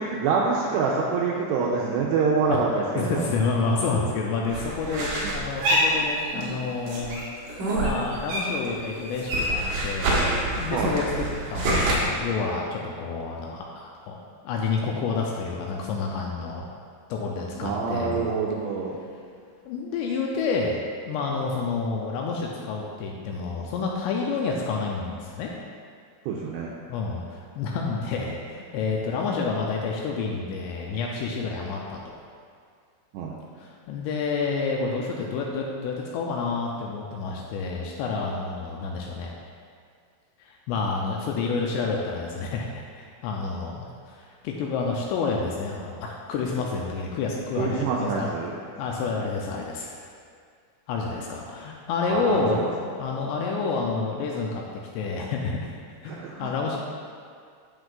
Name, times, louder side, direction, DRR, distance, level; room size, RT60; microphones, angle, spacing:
voice 1, 0.0-3.3 10.7-11.0 17.5-19.0 26.3-26.7 33.1-33.3 47.6-48.5 52.1-52.7 56.1-56.5, right 4 dB, 90° right, -3 dB, 2.5 m, -26 dB
voice 2, 2.5-11.0 11.5-14.2 14.4-16.7 17.1-18.2 19.7-20.8 21.1-25.6 26.9-32.2 33.6-39.3 40.4-48.3 48.8-49.9 50.9-52.7 53.0-54.7 54.9-55.8 56.0-56.8, left 4 dB, 85° left, -1 dB, 2.6 m, -29 dB
sound 1, 4.5-6.6 6.9-8.7 9.0-11.9, right 1 dB, 65° right, 2.1 m, -26 dB
9.9 x 7.6 x 2.4 m, 2.1 s
omnidirectional pair, 5.5 m